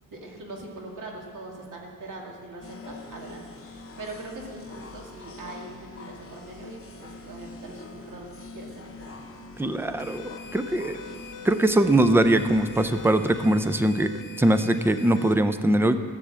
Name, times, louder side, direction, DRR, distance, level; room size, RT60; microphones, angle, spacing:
voice 1, 0.0-9.3, right 2 dB, 70° right, -1 dB, 2.1 m, -42 dB
sound 1, 2.6-13.7, left 3 dB, 45° left, 1.1 m, -44 dB
voice 2, 9.6-11.0 11.4-16.0, right 1 dB, 5° right, 10 dB, 0.4 m, -22 dB
sound 2, 10.0-15.3, left 4 dB, 75° left, 1.0 m, -43 dB
15.0 x 7.0 x 7.4 m, 2.3 s
wide cardioid pair, 145°, 32 cm